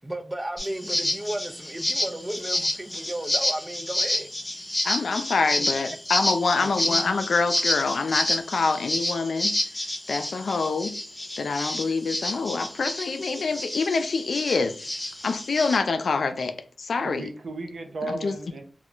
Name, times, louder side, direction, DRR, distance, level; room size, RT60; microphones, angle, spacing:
voice 1, 0.0-4.3 5.6-5.7, right 1 dB, 20° right, 0.4 m, -34 dB
sound 1, 0.6-15.8, left 1 dB, 20° left, 0.6 m, -29 dB
voice 2, 4.8-9.6 10.1-11.0 11.4-14.7 15.2-17.3 18.0-18.3, left 4 dB, 85° left, 0.3 m, -26 dB
voice 3, 6.6-7.0 17.0-18.6, right 2 dB, 90° right, 0.5 m, -35 dB
2.2 x 2.0 x 3.8 m
wide cardioid pair, 65°, 0 cm